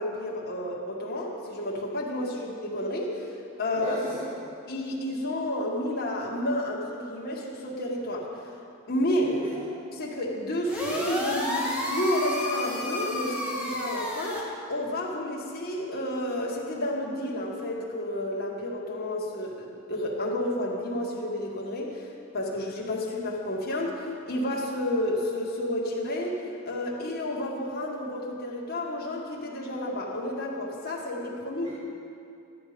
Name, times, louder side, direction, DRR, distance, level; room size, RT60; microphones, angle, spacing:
voice 1, 0.0-3.3 3.6-4.0 4.7-8.3 8.9-9.3 10.0-22.1 22.3-26.4 26.6-31.7, left 1 dB, 45° left, -4 dB, 1.8 m, -31 dB
voice 2, 3.8-4.3 9.2-9.7 31.6-31.7, equal, 30° right, -10 dB, 2.5 m, -36 dB
sound 1, 10.7-14.4, left 1 dB, 5° right, 1.9 m, -31 dB
13.0 x 9.5 x 5.2 m, 2.5 s
head